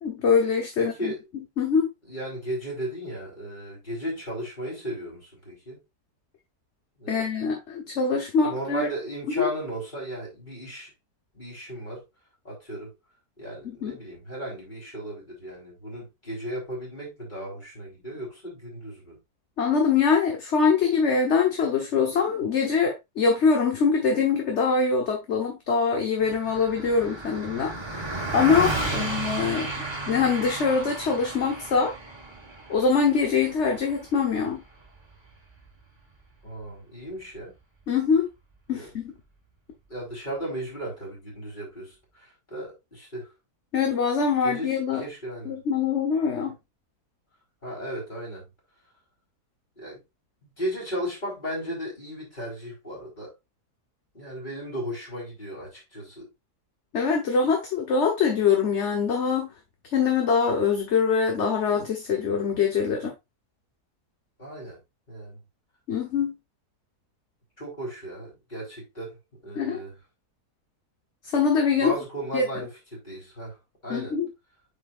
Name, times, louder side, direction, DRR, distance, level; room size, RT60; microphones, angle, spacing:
voice 1, 0.0-1.1 1.6-1.9 7.1-8.9 9.3-9.5 13.8-13.9 19.6-29.7 30.1-31.9 32.7-34.6 37.9-38.3 38.7-39.1 43.7-45.0 45.5-46.5 56.9-59.5 59.9-63.1 65.9-66.3 69.5-69.8 71.3-71.9 72.3-72.4 73.9-74.3, left 5 dB, 50° left, 1.4 m, -23 dB
voice 2, 0.8-1.2 2.0-5.8 7.0-7.3 8.4-10.9 11.3-12.0 12.4-12.9 13.4-19.2 28.8-29.1 36.4-37.5 38.7-38.9 39.9-43.3 44.4-45.6 46.4-46.5 47.6-48.5 49.8-50.0 50.6-53.3 54.1-56.3 64.4-64.8 65.1-65.4 67.6-69.2 69.4-70.0 71.8-73.6 73.8-74.2, equal, 30° left, 3.9 m, -35 dB
Car passing by, 26.2-35.8, right 2 dB, 15° right, 1.6 m, -33 dB
8.4 x 5.1 x 2.5 m
omnidirectional pair, 1.7 m